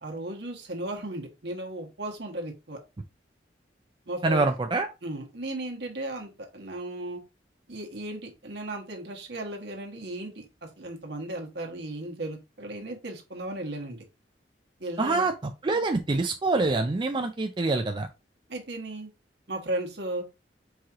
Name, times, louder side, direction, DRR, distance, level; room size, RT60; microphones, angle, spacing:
voice 1, 0.0-2.8 4.1-4.5 5.0-7.2 7.7-14.0 14.8-15.3 18.5-19.1 19.5-20.2, right 1 dB, 65° right, 2 dB, 1.3 m, -35 dB
voice 2, 4.2-4.9 15.0-15.3 15.6-18.1, right 3 dB, 25° right, 5 dB, 0.4 m, -25 dB
4.7 x 3.1 x 3.6 m, 0.25 s
head